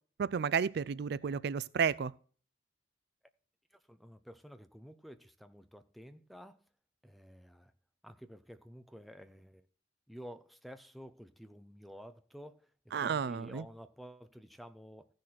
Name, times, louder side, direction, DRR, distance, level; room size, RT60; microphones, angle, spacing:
voice 1, 0.2-2.1 12.9-13.6, right 6 dB, 60° right, 0.4 m, -32 dB
voice 2, 3.7-6.6 7.0-7.7 8.0-9.7 10.1-12.7 13.0-15.1, equal, ahead, 0.7 m, -51 dB
15.0 x 6.4 x 4.2 m
head